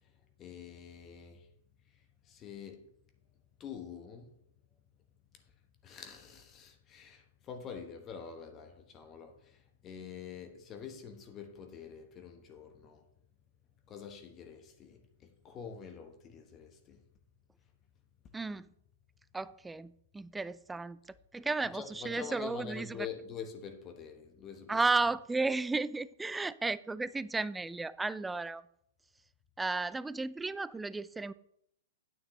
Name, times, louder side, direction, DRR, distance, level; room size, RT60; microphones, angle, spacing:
voice 1, 0.4-1.5 2.2-2.9 3.6-4.3 5.8-13.0 13.9-17.0 21.7-24.8, left 7 dB, 25° left, 1.0 m, -46 dB
voice 2, 18.3-18.7 19.3-21.0 21.3-23.1 24.7-28.6 29.6-31.3, right 3 dB, 10° right, 0.3 m, -33 dB
9.3 x 9.2 x 3.1 m
figure-of-eight pair, 110°, 0 cm